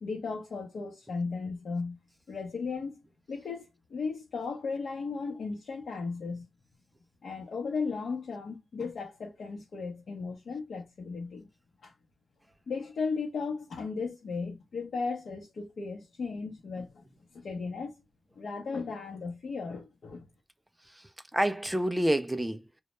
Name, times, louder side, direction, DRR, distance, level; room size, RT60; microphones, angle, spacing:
voice 1, 0.0-2.0 2.3-3.0 3.3-6.5 7.2-11.5 11.8-11.9 12.7-17.0 17.3-17.9 18.4-20.3, left 4 dB, 75° left, 0.7 m, -36 dB
voice 2, 20.9-22.8, right 1 dB, 10° right, 0.3 m, -29 dB
2.1 x 2.1 x 2.8 m
wide cardioid pair, 115°, 0 cm